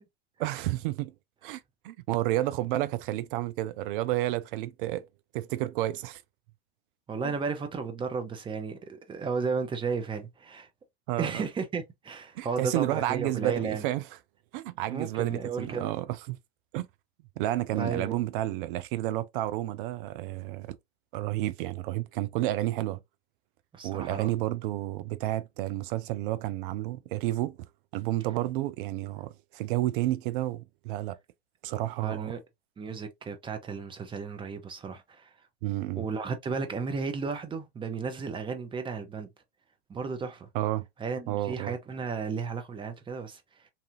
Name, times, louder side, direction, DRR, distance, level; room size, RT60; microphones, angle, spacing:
voice 1, 0.4-1.1 1.4-5.1 5.3-6.2 7.2-7.3 11.1-11.4 12.3-14.0 14.5-16.4 16.7-16.9 17.4-20.7 21.1-23.0 23.8-27.6 27.9-31.2 31.6-32.3 35.6-36.0 40.5-40.8 41.3-41.7, right 15 dB, 60° right, 0.5 m, -31 dB
voice 2, 7.1-10.7 11.2-13.8 14.9-15.9 17.7-18.2 23.7-24.3 32.0-32.4 32.8-35.3 36.0-39.3 39.9-40.5 41.0-43.6, right 5 dB, 15° right, 0.6 m, -34 dB
2.7 x 2.5 x 2.6 m
hypercardioid pair, 105°, 30 cm